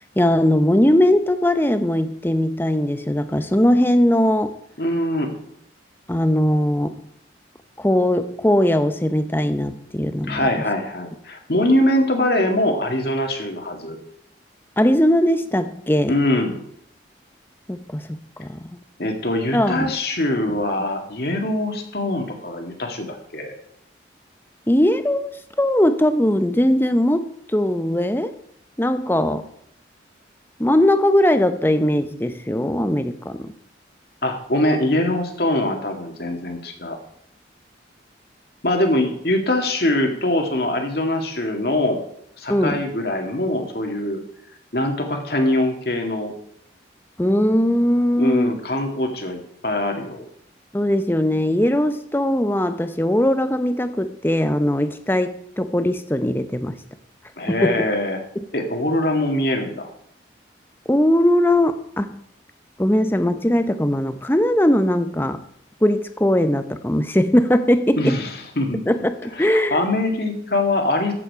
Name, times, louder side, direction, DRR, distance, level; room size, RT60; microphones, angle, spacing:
voice 1, 0.2-4.6 6.1-7.1 7.8-10.5 14.8-16.2 17.7-18.6 19.5-19.9 24.7-25.3 25.6-28.3 28.8-29.5 30.6-33.5 42.5-42.8 47.2-48.5 50.7-56.8 57.5-57.8 58.4-58.5 60.9-62.2 62.8-65.4 65.8-68.2 68.9-69.8, left 1 dB, 10° left, 10 dB, 0.7 m, -20 dB
voice 2, 4.8-5.4 10.3-14.0 16.1-16.6 19.0-23.5 34.2-37.0 38.6-42.0 42.4-44.2 44.7-46.3 48.2-50.3 57.4-58.2 58.5-59.9 68.0-68.9 69.4-71.1, left 1 dB, 55° left, 3 dB, 2.1 m, -23 dB
14.0 x 7.7 x 4.8 m, 0.70 s
head